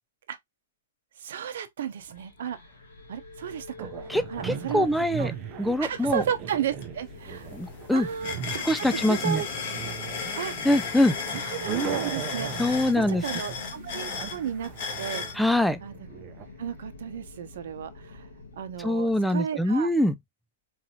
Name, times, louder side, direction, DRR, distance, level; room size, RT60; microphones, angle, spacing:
voice 1, 1.2-2.6 3.1-3.9 4.3-4.9 5.2-5.3 5.8-7.5 7.9-9.5 10.3-10.6 11.3-14.7 15.0-15.2 15.8-15.9 16.6-18.3 18.6-19.9, right 9 dB, 65° right, 0.8 m, -33 dB
sound 1, 2.0-19.4, left 3 dB, 75° left, 1.5 m, -47 dB
sound 2, 3.8-16.5, right 8 dB, 30° right, 0.7 m, -38 dB
voice 2, 4.1-5.3 5.6-6.2 7.5-8.1 8.7-9.4 10.6-11.2 12.6-13.2 15.4-15.8 18.8-20.2, left 1 dB, ahead, 0.4 m, -24 dB
sound 3, 6.8-6.9 7.2-15.4, left 5 dB, 50° left, 1.2 m, -35 dB
4.0 x 2.7 x 2.7 m
hypercardioid pair, 135°, 0 cm